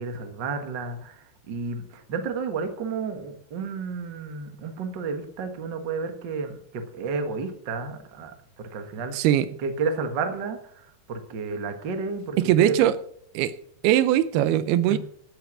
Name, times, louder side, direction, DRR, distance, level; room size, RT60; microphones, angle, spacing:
voice 1, 0.0-8.3 8.7-9.2 9.6-12.8 14.9-15.0, right 4 dB, 50° right, 1.4 m, -31 dB
voice 2, 9.1-9.5 12.4-12.9 13.3-13.5 13.8-15.0, right 12 dB, 90° right, 2.7 m, -20 dB
13.5 x 8.9 x 6.1 m
omnidirectional pair, 4.4 m